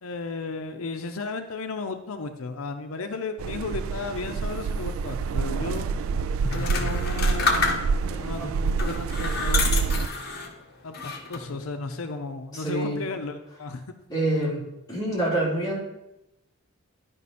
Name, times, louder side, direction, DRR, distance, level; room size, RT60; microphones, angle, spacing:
voice 1, 0.0-5.9 6.5-7.8 8.2-10.0 10.8-13.8, left 3 dB, 90° left, 6 dB, 0.6 m, -34 dB
sound 1, 3.4-10.1, right 5 dB, 75° right, 0.3 m, -27 dB
sound 2, 6.4-8.2 8.7-10.5 10.9-11.6, left 4 dB, 50° left, 1.1 m, -28 dB
voice 2, 12.5-13.0 14.1-14.6 14.9-15.8, right 1 dB, 20° left, -6 dB, 3.0 m, -26 dB
11.0 x 5.3 x 4.2 m, 0.90 s
head